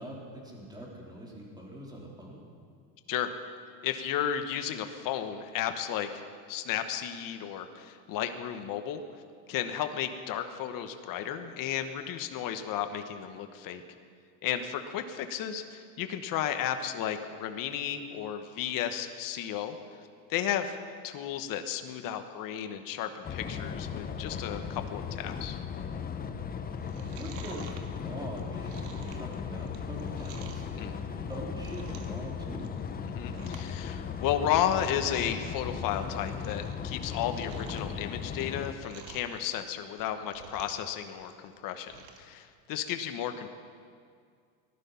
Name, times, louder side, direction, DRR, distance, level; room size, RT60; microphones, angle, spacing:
voice 1, 0.0-2.4 26.6-26.8 27.1-32.7, right 1 dB, 10° right, -3 dB, 3.5 m, -43 dB
voice 2, 3.8-6.2 6.5-9.0 9.5-13.8 14.4-19.8 20.3-20.7 21.0-25.6 30.8-30.9 33.1-41.9 42.2-43.5, left 10 dB, 45° left, 7 dB, 1.3 m, -33 dB
sound 1, 23.2-38.7, left 6 dB, 20° left, 0.7 m, -37 dB
Chewing mastication, 26.7-30.7 31.2-32.2 32.5-32.9 33.2-33.7 34.0-34.1 34.5-34.6 34.8-35.3 35.7-36.7 37.0-39.4 39.9-40.9 41.2-42.3 42.6-42.7, right 6 dB, 60° right, 1.8 m, -49 dB
18.5 x 12.0 x 5.7 m, 2.1 s
supercardioid pair, 125°, 45 cm